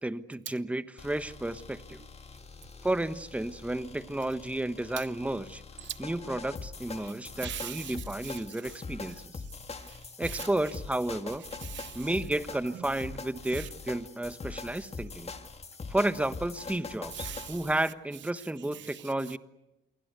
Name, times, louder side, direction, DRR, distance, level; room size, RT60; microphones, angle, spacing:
voice 1, 0.0-2.0 2.8-5.6 6.0-9.4 10.2-11.5 11.9-15.3 15.9-19.4, right 1 dB, 5° right, 1.2 m, -32 dB
sound 1, 1.0-17.7, left 4 dB, 30° left, 2.0 m, -43 dB
voice 2, 7.0-8.8 9.1-10.5 11.6-12.1 12.7-12.9 13.5-13.7 14.7-14.8 17.1-17.7 18.4-19.4, right 11 dB, 70° right, 1.0 m, -43 dB
28.0 x 23.0 x 8.2 m
cardioid pair, 90°, 20 cm